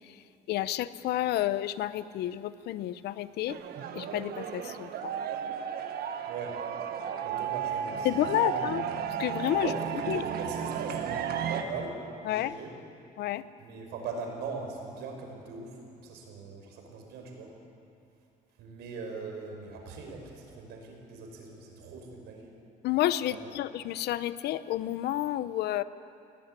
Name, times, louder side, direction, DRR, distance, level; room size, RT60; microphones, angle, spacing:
voice 1, 0.5-3.6 3.9-5.1 8.0-8.8 9.2-9.7 10.1-10.2 12.3-12.5 13.2-13.4 22.8-25.8, left 13 dB, 75° left, 15 dB, 0.8 m, -30 dB
sound 1, 3.5-11.6, right 9 dB, 65° right, 1.5 m, -34 dB
voice 2, 6.3-6.6 7.2-8.8 9.6-12.7 13.6-17.5 18.6-22.5 23.3-23.5, right 4 dB, 85° right, 2 dB, 5.5 m, -40 dB
19.5 x 18.0 x 9.7 m, 2.6 s
cardioid pair, 110°, 17 cm